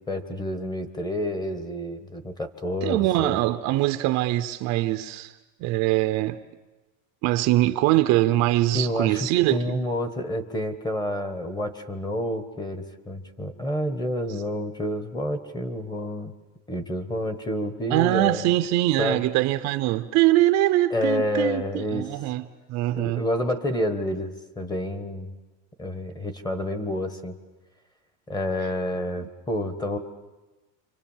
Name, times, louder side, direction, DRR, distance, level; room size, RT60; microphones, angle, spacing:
voice 1, 0.1-3.4 8.7-16.3 16.7-18.4 19.0-19.2 20.9-22.0 22.9-25.3 25.8-27.3 28.3-30.0, left 1 dB, 10° left, 1.4 m, -29 dB
voice 2, 2.8-5.3 5.6-6.4 7.2-9.8 17.9-22.4 22.7-23.2, right 16 dB, 40° right, 0.8 m, -23 dB
28.5 x 25.0 x 7.4 m
supercardioid pair, 150°, 40 cm